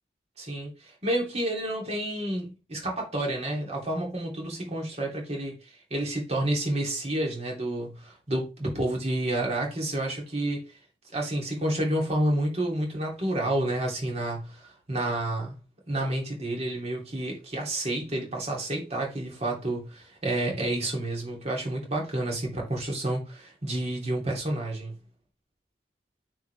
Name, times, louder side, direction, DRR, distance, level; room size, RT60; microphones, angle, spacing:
voice 1, 0.4-5.6 5.9-10.7 11.1-15.5 15.9-25.0, right 1 dB, 40° right, 3.0 m, -30 dB
9.6 x 4.6 x 3.4 m
head